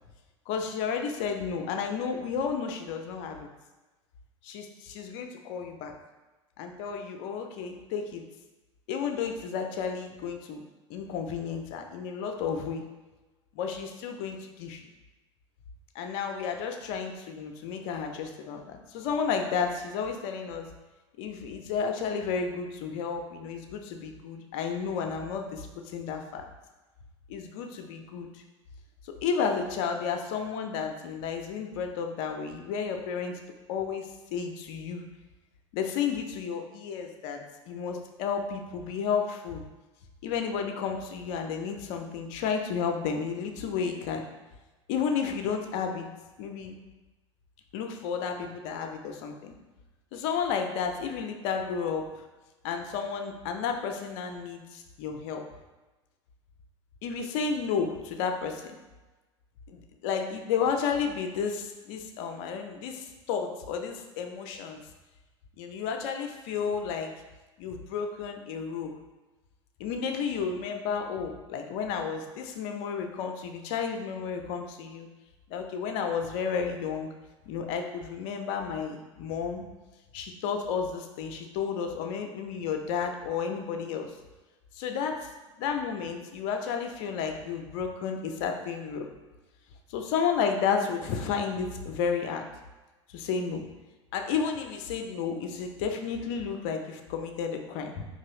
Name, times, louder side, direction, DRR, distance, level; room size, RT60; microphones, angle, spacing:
voice 1, 0.5-3.5 4.4-5.9 6.6-8.2 8.9-12.8 13.5-14.9 15.9-20.7 21.2-25.7 25.9-26.5 27.3-28.4 29.0-33.4 33.7-35.0 35.7-39.6 40.2-44.2 44.9-46.1 46.4-46.8 47.7-49.6 50.1-52.2 52.6-55.4 57.0-58.8 59.7-64.8 65.6-67.1 67.6-68.9 69.8-75.1 75.5-77.1 77.5-79.6 80.1-84.1 84.7-85.3 85.6-89.1 89.9-92.5 93.1-93.6 94.1-98.0, left 6 dB, 50° left, 4 dB, 0.5 m, -32 dB
4.4 x 3.0 x 2.8 m, 1.2 s
figure-of-eight pair, 75°, 16 cm